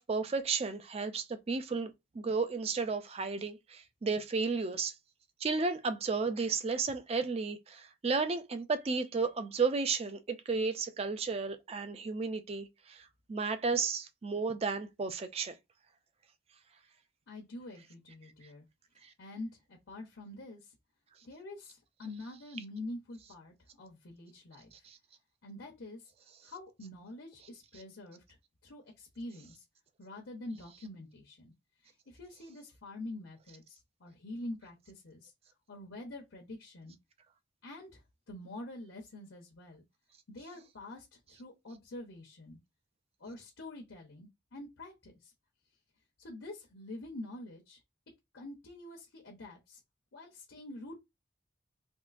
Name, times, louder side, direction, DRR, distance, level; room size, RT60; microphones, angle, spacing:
voice 1, 0.0-4.9 5.4-13.0 13.3-15.5 24.8-25.0, right 4 dB, 30° right, 0.4 m, -33 dB
voice 2, 17.3-18.7 19.2-20.8 21.2-24.9 25.4-26.1 26.4-28.2 28.6-29.6 30.0-31.5 31.8-35.3 35.7-36.9 37.6-39.8 40.3-42.6 43.2-45.3 46.2-47.8 48.3-49.8 50.1-51.0, left 2 dB, 80° left, 0.8 m, -46 dB
3.6 x 2.4 x 2.4 m
head